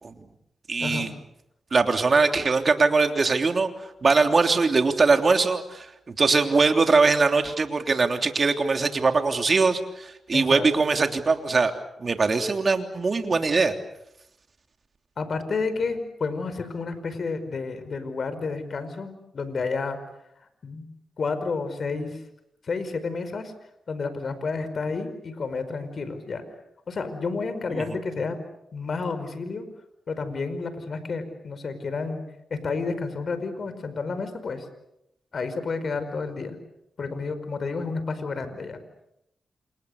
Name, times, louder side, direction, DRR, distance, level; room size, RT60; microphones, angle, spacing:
voice 1, 0.7-1.1 1.7-3.7 4.0-11.7 12.0-13.7 27.7-27.8, right 4 dB, 50° right, 5 dB, 3.3 m, -21 dB
voice 2, 10.3-10.6 15.2-20.0 20.6-20.8 21.2-22.2 22.6-23.5 23.9-26.4 26.9-28.4 28.7-29.7 30.1-32.2 32.5-34.7 35.3-36.6 37.0-38.8, left 4 dB, 60° left, 11 dB, 5.0 m, -30 dB
29.0 x 28.0 x 6.7 m, 0.82 s
cardioid pair, 65°, 0 cm